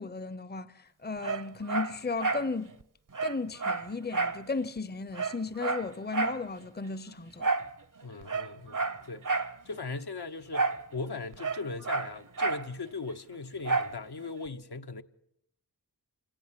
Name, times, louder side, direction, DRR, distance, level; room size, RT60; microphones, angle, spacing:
voice 1, 0.0-2.8 3.2-7.5, left 4 dB, 25° left, 0.8 m, -35 dB
Dog, 1.2-2.5 2.8-2.9 3.1-4.4 4.8-4.9 5.1-6.4 7.4-7.7 8.2-9.5 10.5-10.9 11.1-12.7 13.6-14.0 14.5-14.6, right 4 dB, 50° right, 0.9 m, -30 dB
voice 2, 8.0-9.3 9.6-15.0, left 3 dB, 75° left, 1.2 m, -39 dB
26.5 x 18.0 x 7.5 m
wide cardioid pair, 60°, 40 cm